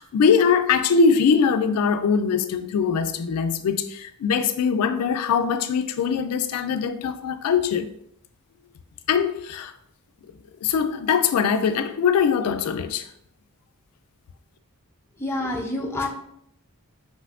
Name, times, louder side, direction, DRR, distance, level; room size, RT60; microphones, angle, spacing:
voice 1, 0.0-7.9 9.1-9.7 10.6-13.1, left 6 dB, 85° left, 0.3 m, -22 dB
voice 2, 15.2-16.1, left 2 dB, 10° left, 0.5 m, -27 dB
5.7 x 2.6 x 2.5 m
head